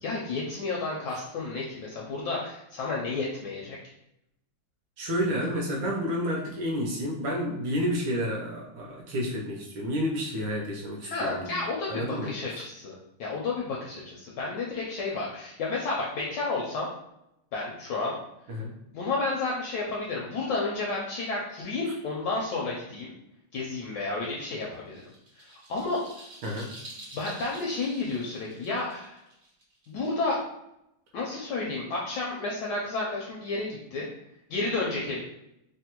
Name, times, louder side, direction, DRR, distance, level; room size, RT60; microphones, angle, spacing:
voice 1, 0.0-3.8 11.0-16.9 17.5-18.2 18.9-23.1 23.5-25.0 25.4-26.0 27.1-29.2 29.9-30.4 31.1-34.1 34.5-35.2, left 3 dB, 75° left, -3 dB, 1.0 m, -31 dB
voice 2, 5.0-11.6 11.9-12.3 18.5-18.7 21.9-22.0 26.4-26.7, equal, 75° right, -2 dB, 1.2 m, -30 dB
sound 1, 24.6-30.4, right 1 dB, 50° right, 1.0 m, -47 dB
3.5 x 2.1 x 2.8 m, 0.84 s
omnidirectional pair, 2.4 m